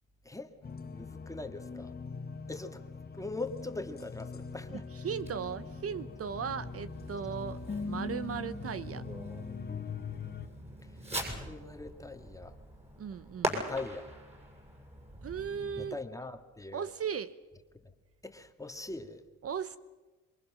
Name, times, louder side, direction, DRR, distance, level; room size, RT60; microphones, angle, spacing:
voice 1, 0.2-0.6 0.9-2.0 2.5-2.9 3.1-4.9 10.8-12.6 13.5-14.1 15.8-16.9 17.8-17.9 18.2-19.2, left 3 dB, 10° left, 7 dB, 2.0 m, -41 dB
sound 1, 0.6-10.5, left 5 dB, 30° left, 1.7 m, -42 dB
voice 2, 5.0-7.6 7.8-9.0 13.0-13.5 15.2-16.0 16.7-17.3 19.4-19.8, right 7 dB, 50° right, 14 dB, 0.9 m, -37 dB
Fireworks, 5.2-15.9, right 1 dB, 20° right, 7.2 m, -42 dB
27.0 x 23.0 x 6.3 m, 1.2 s
cardioid pair, 90°, 30 cm